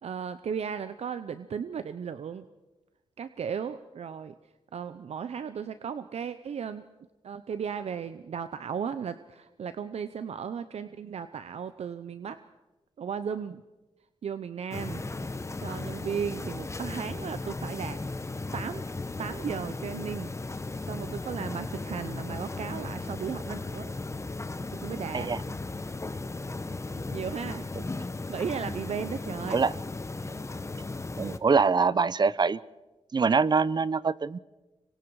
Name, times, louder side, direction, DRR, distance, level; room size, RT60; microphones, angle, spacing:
voice 1, 0.0-2.5 3.2-6.9 7.2-12.4 13.0-13.6 14.2-18.8 19.2-20.3 20.6-23.9 24.7-25.3 27.1-27.7 28.3-29.6, right 7 dB, 75° right, 12 dB, 0.7 m, -36 dB
sound 1, 14.7-31.4, left 3 dB, 25° left, 1.2 m, -36 dB
voice 2, 31.2-32.6 33.1-34.4, right 5 dB, 40° right, 19 dB, 0.6 m, -24 dB
25.5 x 23.5 x 4.8 m, 1.1 s
cardioid pair, 85°, 11 cm